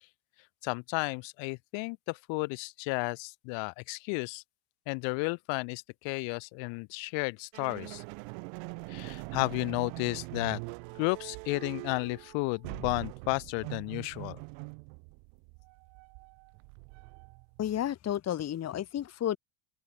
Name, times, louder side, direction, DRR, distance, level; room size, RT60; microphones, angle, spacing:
voice 1, 0.6-4.4 4.9-8.0 8.9-10.6 10.9-14.4, left 32 dB, 75° left, 1.6 m, -33 dB
sound 1, 7.5-17.6, right 40 dB or more, 75° right, 2.1 m, -43 dB
voice 2, 17.6-19.4, left 11 dB, 35° left, 1.3 m, -32 dB
open air
supercardioid pair, 115°, 46 cm